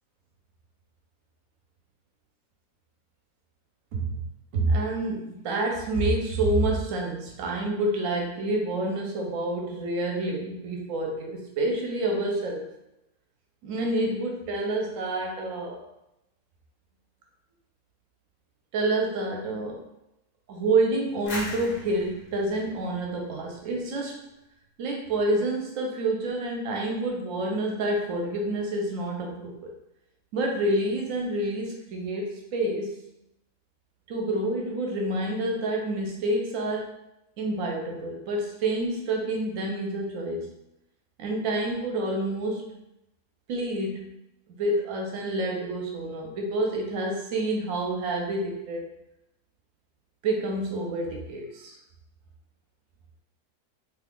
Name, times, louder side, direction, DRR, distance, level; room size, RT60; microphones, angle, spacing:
voice 1, 4.5-12.7 13.6-15.8 18.7-19.8 20.5-24.2 24.8-29.7 30.3-32.9 34.1-36.9 37.4-40.5 41.2-42.7 43.5-44.1 44.6-48.8 50.2-51.8, right 2 dB, 65° right, 0 dB, 1.0 m, -28 dB
sound 1, 21.3-24.0, left 1 dB, 60° left, 1.0 m, -39 dB
3.1 x 2.4 x 3.5 m, 0.87 s
omnidirectional pair, 1.6 m